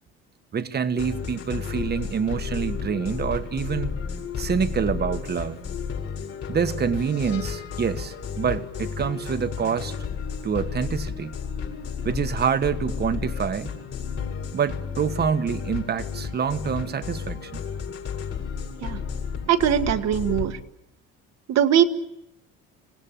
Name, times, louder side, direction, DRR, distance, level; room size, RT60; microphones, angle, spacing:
voice 1, 0.5-3.9 4.4-5.6 6.5-10.0 10.4-11.4 12.0-13.7 14.5-17.6, right 7 dB, 35° right, 10 dB, 1.4 m, -26 dB
sound 1, 1.0-20.5, left 6 dB, 55° left, 6.0 m, -32 dB
voice 2, 19.5-20.6 21.5-21.8, right 10 dB, 60° right, 8 dB, 1.6 m, -20 dB
26.5 x 17.5 x 8.9 m, 0.90 s
cardioid pair, 115°, 29 cm